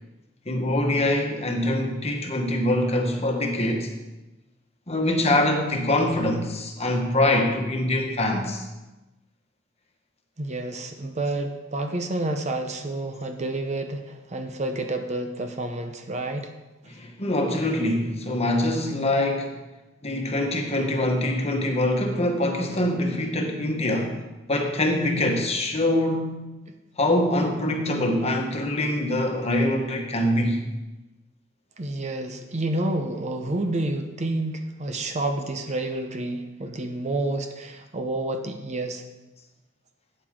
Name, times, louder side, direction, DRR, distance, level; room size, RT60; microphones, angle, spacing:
voice 1, 0.4-3.9 4.9-8.7 16.9-19.6 20.0-24.2 24.5-26.5 27.0-30.6, left 1 dB, 30° left, 2 dB, 1.3 m, -24 dB
voice 2, 10.4-16.5 31.8-39.0, right 2 dB, 35° right, 6 dB, 0.7 m, -29 dB
12.5 x 8.8 x 3.7 m, 1.1 s
head